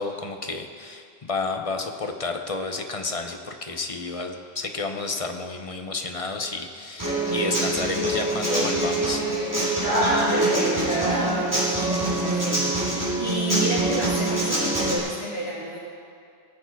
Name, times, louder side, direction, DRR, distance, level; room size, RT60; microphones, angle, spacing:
voice 1, 0.0-9.3 11.8-11.9, left 3 dB, 35° left, 5 dB, 0.8 m, -31 dB
Human voice / Acoustic guitar, 7.0-15.0, right 2 dB, 20° right, 3.6 m, -24 dB
voice 2, 10.0-15.8, right 1 dB, 70° right, -11 dB, 2.9 m, -30 dB
19.0 x 7.1 x 4.6 m, 2.3 s
omnidirectional pair, 1.0 m